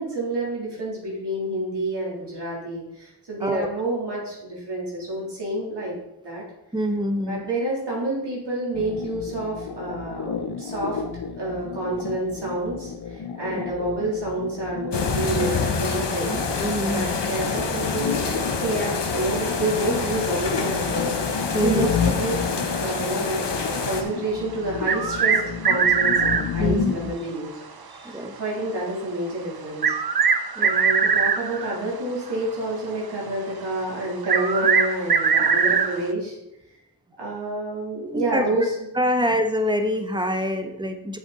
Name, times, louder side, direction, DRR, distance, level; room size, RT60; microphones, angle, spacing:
voice 1, 0.0-6.0 6.2-6.4 7.2-11.0 11.4-16.4 16.9-21.1 21.6-22.4 22.8-23.4 23.8-27.5 28.1-29.9 30.6-36.4 37.2-38.6, right 2 dB, 80° right, -5 dB, 3.6 m, -29 dB
voice 2, 6.7-7.4 13.5-13.6 16.2-17.1 21.5-22.0 26.6-27.0 28.0-28.3 30.6-30.7 38.1-38.7 38.9-41.2, equal, 10° right, 6 dB, 1.1 m, -25 dB
sound 1, 8.7-27.2, left 7 dB, 65° left, 0.6 m, -32 dB
sound 2, 14.9-24.0, left 4 dB, 85° left, 1.1 m, -27 dB
sound 3, 24.9-26.5 28.3-28.4 29.8-31.8 34.2-36.0, right 6 dB, 60° right, 0.7 m, -21 dB
7.8 x 7.3 x 4.1 m, 0.87 s
wide cardioid pair, 65°, 41 cm